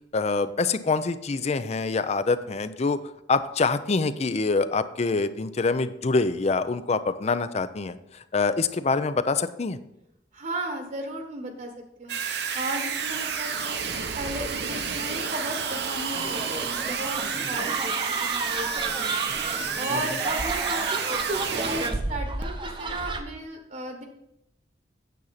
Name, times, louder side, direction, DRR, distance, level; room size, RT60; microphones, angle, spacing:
voice 1, 0.1-3.0 3.3-8.0 8.3-9.8 19.9-20.0, left 4 dB, 35° left, 13 dB, 0.4 m, -25 dB
voice 2, 10.3-11.7 12.0-12.1 12.5-13.8 14.1-16.4 16.7-17.2 17.5-19.2 19.8-24.0, right 1 dB, 45° right, 4 dB, 1.2 m, -34 dB
sound 1, 12.1-21.9, right 6 dB, 65° right, 0.9 m, -30 dB
sound 2, 16.1-23.2, right 3 dB, 25° right, 0.7 m, -32 dB
9.3 x 7.1 x 4.1 m, 0.84 s
head